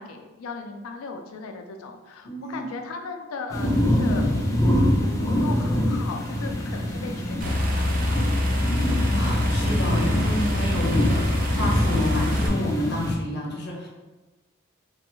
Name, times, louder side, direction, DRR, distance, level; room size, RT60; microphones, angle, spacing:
voice 1, 0.0-4.3 5.0-8.3, left 4 dB, 85° left, 4 dB, 0.4 m, -37 dB
voice 2, 2.2-2.6 8.8-13.9, left 1 dB, 55° left, -2 dB, 0.7 m, -29 dB
sound 1, 3.5-13.1, left 1 dB, 15° left, 0.5 m, -25 dB
sound 2, 7.4-12.5, left 1 dB, 40° right, 0.4 m, -25 dB
3.3 x 2.3 x 3.0 m, 1.2 s
head